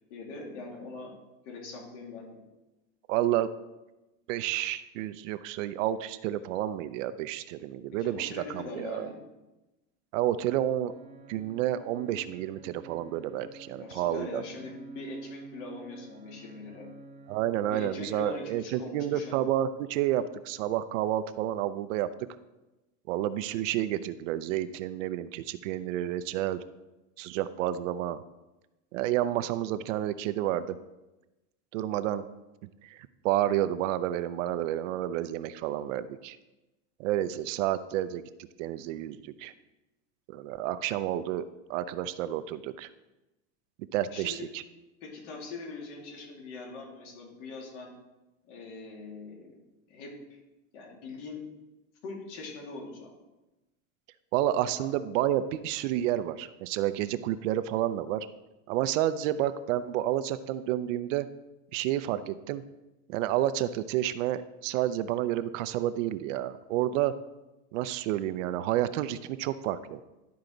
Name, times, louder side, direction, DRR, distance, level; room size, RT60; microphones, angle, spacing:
voice 1, 0.1-1.1 1.4-2.4 8.0-9.2 13.8-16.9 17.7-19.3 44.1-44.5 45.0-47.9 48.5-49.6 49.9-50.4 50.7-51.4 52.0-53.1 54.7-54.9, left 3 dB, 70° left, -1 dB, 2.7 m, -42 dB
voice 2, 3.1-3.5 4.3-9.1 10.1-10.9 11.3-14.4 17.3-22.1 23.1-26.6 27.2-28.2 28.9-30.8 31.7-32.2 32.8-36.4 37.0-38.2 38.6-39.5 40.3-41.4 41.7-42.9 43.9-44.6 54.3-58.3 58.7-61.3 61.7-62.6 63.1-67.1 67.7-70.0, right 12 dB, 75° right, 12 dB, 0.6 m, -30 dB
sound 1, 10.9-18.4, right 2 dB, 15° right, 1.2 m, -49 dB
12.0 x 4.7 x 3.9 m, 1.0 s
supercardioid pair, 155°, 38 cm